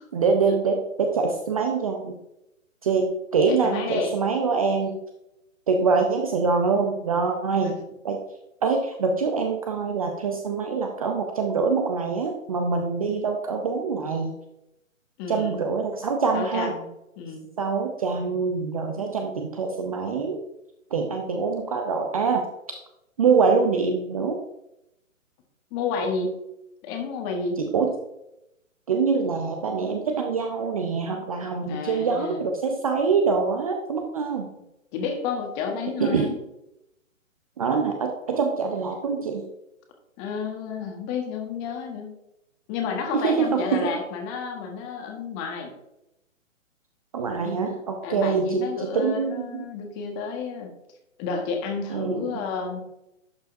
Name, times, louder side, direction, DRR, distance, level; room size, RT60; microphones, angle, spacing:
voice 1, 0.1-2.2 2.8-5.0 5.7-7.8 8.0-8.2 8.6-14.3 15.3-16.7 17.6-20.4 20.9-22.4 22.7-22.8 23.2-24.4 27.6-27.9 28.9-34.5 36.0-36.3 37.6-39.4 43.1-43.9 47.1-49.7 51.9-52.3, right 5 dB, 30° right, 4 dB, 0.5 m, -24 dB
voice 2, 3.5-4.2 7.5-7.8 15.2-15.6 16.3-16.9 17.2-17.5 25.7-26.3 26.8-27.6 31.6-32.5 34.9-36.3 40.2-42.2 42.7-45.7 48.0-50.7 51.2-52.8, left 5 dB, 20° left, 3 dB, 1.2 m, -31 dB
11.5 x 5.5 x 2.6 m, 0.87 s
figure-of-eight pair, 130°, 40 cm